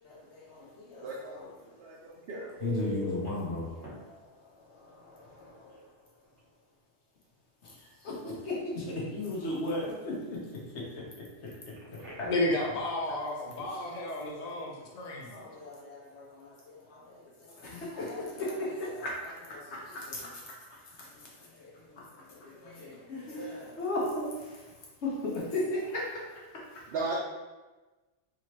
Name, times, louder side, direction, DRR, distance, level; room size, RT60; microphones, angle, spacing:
voice 1, 0.0-1.1 1.3-1.7 2.6-4.2 4.7-5.8 7.6-7.8 8.0-10.4 10.7-10.8 11.4-11.5 11.9-12.3 13.9-14.6 15.3-24.6 25.0-26.9, left 1 dB, 70° left, -4 dB, 1.2 m, -37 dB
voice 2, 1.0-1.4 1.8-2.5 26.9-27.1, right 3 dB, 65° right, -3 dB, 0.8 m, -36 dB
Telephone, 2.6-3.3 3.8-3.9 5.7-5.8 6.2-6.4 11.7-12.5 19.7-19.9, equal, 85° right, 1.2 m, -41 dB
voice 3, 12.3-15.4, left 1 dB, 40° left, -1 dB, 0.7 m, -32 dB
3.7 x 3.0 x 2.9 m, 1.2 s
omnidirectional pair, 1.2 m